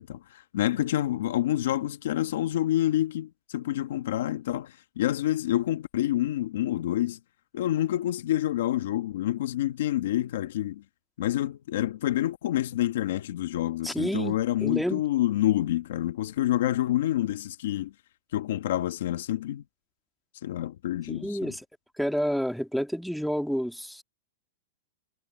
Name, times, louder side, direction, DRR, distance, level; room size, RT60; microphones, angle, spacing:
voice 1, 0.0-7.2 7.5-10.8 11.2-17.9 18.3-19.6 20.4-21.5, left 13 dB, 70° left, 1.5 m, -28 dB
voice 2, 13.8-15.0 21.1-21.7 22.0-24.0, equal, ahead, 1.7 m, -29 dB
supercardioid pair, 170°, 0 cm